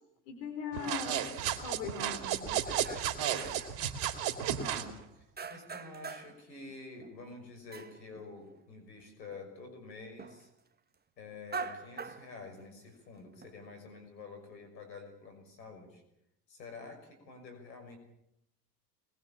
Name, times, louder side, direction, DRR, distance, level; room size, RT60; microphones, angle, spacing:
voice 1, 0.3-1.2 1.6-2.6, left 6 dB, 70° left, 5 dB, 4.3 m, -40 dB
sound 1, 0.7-4.9, right 10 dB, 60° right, 2.9 m, -33 dB
sound 2, 2.7-3.8 4.2-5.0 5.4-6.4 6.7-8.6 9.0-9.1 9.3-9.5 10.2-10.4 11.3-12.9 13.4-13.9, right 5 dB, 20° right, 1.5 m, -44 dB
voice 2, 4.5-10.5 11.2-16.0 16.5-18.0, left 3 dB, 90° left, 7 dB, 6.1 m, -48 dB
23.0 x 21.0 x 7.3 m, 0.80 s
hypercardioid pair, 80°, 50 cm